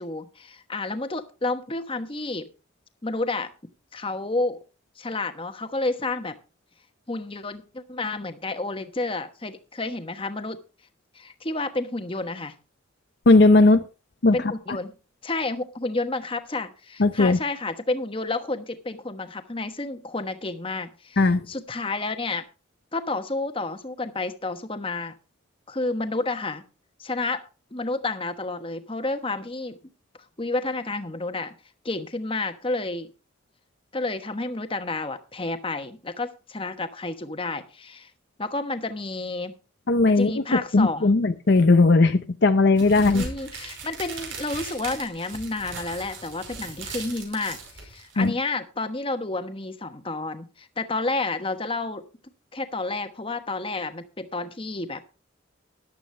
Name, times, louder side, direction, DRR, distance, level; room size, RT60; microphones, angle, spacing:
voice 1, 0.0-2.5 3.0-3.5 3.9-4.6 5.0-6.3 7.1-10.6 11.1-12.5 14.3-14.9 15.2-22.4 22.9-25.1 25.7-26.6 27.0-29.8 30.4-31.5 31.8-33.1 33.9-38.1 38.4-39.5 40.1-41.2 43.1-52.0 52.5-55.0, left 2 dB, 25° left, 1.2 m, -30 dB
voice 2, 13.3-13.8 14.2-14.4 14.7-14.8 17.0-17.4 21.2-21.5 39.9-40.4 40.7-43.3 48.2-48.3, left 3 dB, 55° left, 0.6 m, -17 dB
sound 1, 42.8-48.3, right 4 dB, 75° right, 5.4 m, -38 dB
14.0 x 11.0 x 3.3 m
head